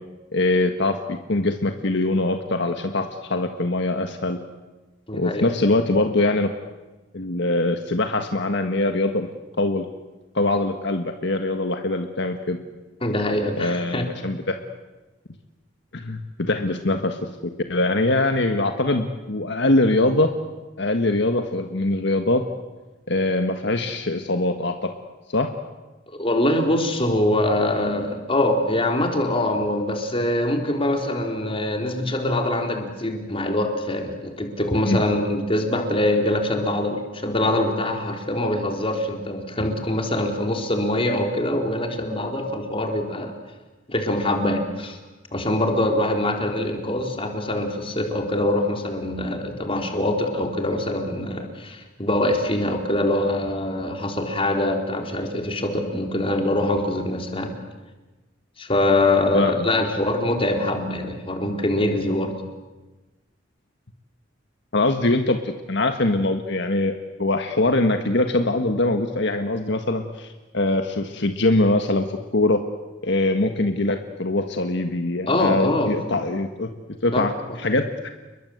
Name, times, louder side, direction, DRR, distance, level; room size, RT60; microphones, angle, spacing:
voice 1, 0.3-4.4 5.1-6.5 7.1-9.3 9.6-9.8 10.3-12.6 13.6-14.6 15.9-20.3 20.8-22.5 23.1-24.9 25.3-25.5 34.9-35.0 59.3-59.7 64.7-66.9 67.2-72.6 73.0-76.7 77.0-78.1, left 2 dB, 65° left, 6 dB, 1.6 m, -23 dB
voice 2, 5.1-5.4 13.0-14.0 26.1-43.3 43.9-45.0 45.3-57.5 58.6-62.3 75.3-75.9 77.1-77.2, left 1 dB, 30° left, 3 dB, 4.0 m, -23 dB
29.5 x 22.0 x 8.1 m, 1.1 s
head